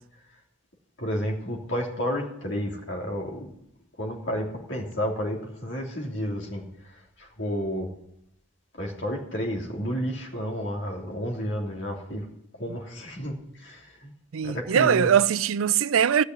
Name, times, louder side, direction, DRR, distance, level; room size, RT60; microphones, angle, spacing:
voice 1, 1.0-3.5 4.0-7.9 8.7-12.2 12.6-14.1 14.4-15.1, equal, 60° left, 3.3 m, -31 dB
voice 2, 14.3-16.2, right 8 dB, 85° right, 0.4 m, -21 dB
15.5 x 6.4 x 9.6 m
head